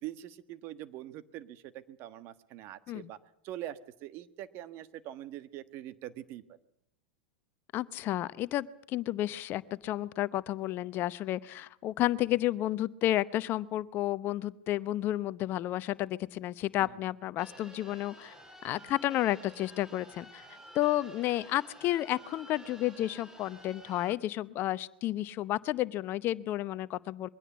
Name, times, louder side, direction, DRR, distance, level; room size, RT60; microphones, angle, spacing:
voice 1, 0.0-3.2 3.4-6.4 16.8-16.9, right 13 dB, 45° right, 13 dB, 1.4 m, -43 dB
voice 2, 7.7-18.4 18.6-20.5 20.7-27.3, left 14 dB, 40° left, 16 dB, 0.8 m, -31 dB
sound 1, 17.4-24.1, right 1 dB, 10° right, 2.9 m, -52 dB
22.5 x 17.0 x 8.5 m, 0.71 s
hypercardioid pair, 95°, 5 cm